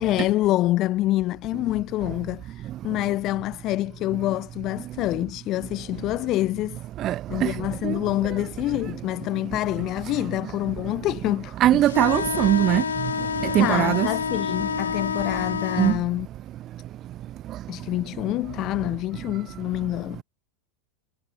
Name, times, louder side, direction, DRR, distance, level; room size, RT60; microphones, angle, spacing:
voice 1, 0.0-6.8 7.3-11.9 13.6-16.3 17.7-20.2, left 16 dB, 35° left, 1.8 m, -26 dB
voice 2, 11.6-12.8 13.5-14.1 15.8-15.9, right 13 dB, 35° right, 0.4 m, -20 dB
sound 1, 11.8-16.0, left 7 dB, 70° left, 2.1 m, -28 dB
figure-of-eight pair, 85°, 0 cm